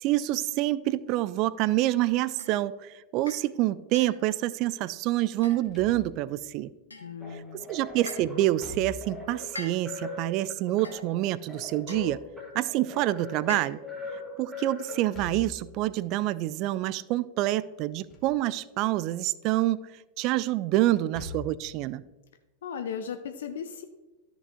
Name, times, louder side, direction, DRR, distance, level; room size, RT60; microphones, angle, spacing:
voice 1, 0.0-6.7 7.3-7.4 7.7-12.2 12.5-13.8 14.4-19.8 20.2-22.0, right 15 dB, 40° right, 0.3 m, -27 dB
sound 1, 2.4-2.6 3.3-3.5 3.9-4.3 5.4-5.9 6.9-7.3 8.1-8.4 9.6-10.1 10.8-11.2 11.9-12.2 13.5-14.0, left 2 dB, 80° left, 1.1 m, -43 dB
Slam / Thump thud, 5.5-6.4 8.4-9.3 11.6-12.6 14.9-15.7 17.8-18.4 18.8-18.9 20.9-21.7, left 1 dB, 25° left, 1.6 m, -44 dB
voice 2, 7.0-7.7 22.6-23.8, left 7 dB, 60° left, 0.6 m, -36 dB
sound 2, 7.2-15.5, left 3 dB, 5° right, 1.8 m, -41 dB
13.0 x 5.2 x 3.7 m
figure-of-eight pair, 90°, 0 cm